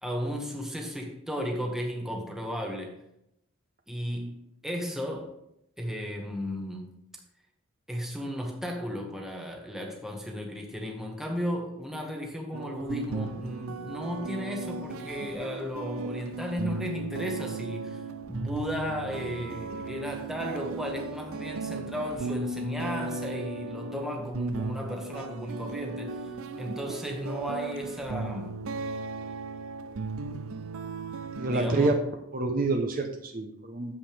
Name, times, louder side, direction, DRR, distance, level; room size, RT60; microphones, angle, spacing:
voice 1, 0.0-2.9 3.9-5.3 5.8-6.9 7.9-18.0 18.3-26.2 26.6-28.5 31.5-32.0, equal, ahead, 1 dB, 1.1 m, -34 dB
sound 1, 12.5-31.6, right 3 dB, 70° right, 0.5 m, -36 dB
voice 2, 31.3-31.9 32.3-33.9, right 3 dB, 40° right, 4 dB, 0.8 m, -27 dB
8.8 x 7.3 x 3.4 m, 0.80 s
head